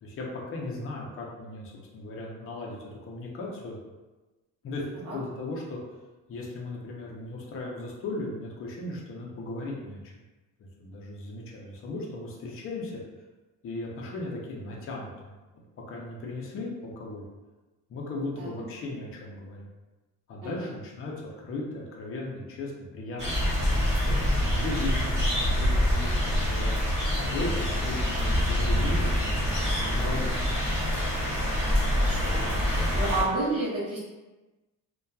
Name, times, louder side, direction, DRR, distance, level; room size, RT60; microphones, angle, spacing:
voice 1, 0.0-3.8 4.6-4.8 5.1-5.8 6.3-10.1 10.6-13.0 13.6-17.2 17.9-19.7 20.3-24.2 24.5-26.8 27.2-30.6, left 2 dB, 40° left, -3 dB, 0.6 m, -37 dB
voice 2, 20.4-20.7 32.0-34.0, right 2 dB, 40° right, -8 dB, 0.8 m, -31 dB
sound 1, 23.2-33.2, left 1 dB, 20° right, 1.1 m, -26 dB
2.7 x 2.2 x 2.2 m, 1.2 s
cardioid pair, 130°, 34 cm